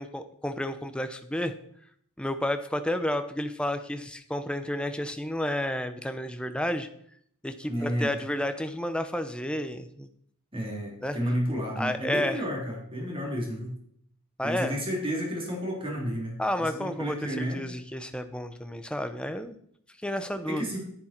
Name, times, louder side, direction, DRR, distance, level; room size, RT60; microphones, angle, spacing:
voice 1, 0.0-1.5 2.2-6.9 7.4-10.1 11.0-11.2 11.8-12.4 14.4-14.8 16.4-19.6 20.0-20.6, left 1 dB, 5° left, 9 dB, 0.7 m, -31 dB
voice 2, 7.7-8.1 10.5-13.8 14.4-17.6 20.5-20.8, equal, 25° right, -1 dB, 3.4 m, -31 dB
10.5 x 9.9 x 4.4 m, 0.66 s
head